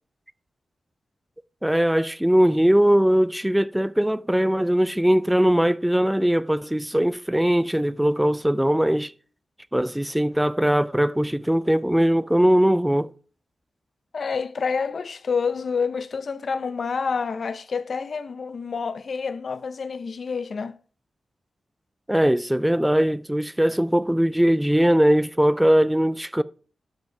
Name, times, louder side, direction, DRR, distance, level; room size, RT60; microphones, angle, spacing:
voice 1, 1.6-9.1 9.7-13.1 22.1-26.4, equal, 5° right, 0.4 m, -20 dB
voice 2, 14.1-20.7, left 5 dB, 60° left, 0.6 m, -28 dB
11.5 x 5.4 x 4.6 m
cardioid pair, 70°, 0 cm